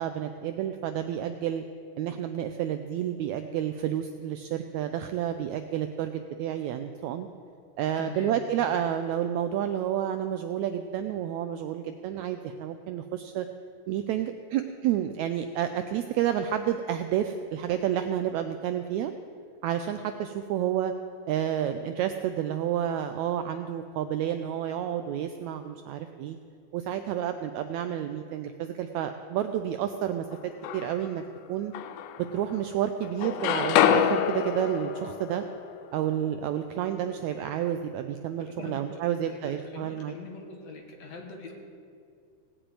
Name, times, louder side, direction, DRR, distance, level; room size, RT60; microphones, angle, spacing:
voice 1, 0.0-1.6 2.0-7.3 7.8-13.5 13.9-19.1 19.6-20.9 21.3-26.4 26.7-30.2 30.7-31.2 31.5-31.7 32.3-35.4 35.9-40.1, right 10 dB, 80° right, 8 dB, 1.6 m, -30 dB
voice 2, 8.0-8.4 38.4-41.5, left 4 dB, 60° left, 2 dB, 2.4 m, -42 dB
sound 1, 30.3-31.2 31.7-32.8 33.0-37.0, left 9 dB, 80° left, 2.0 m, -28 dB
17.5 x 6.9 x 8.8 m, 2.3 s
omnidirectional pair, 3.8 m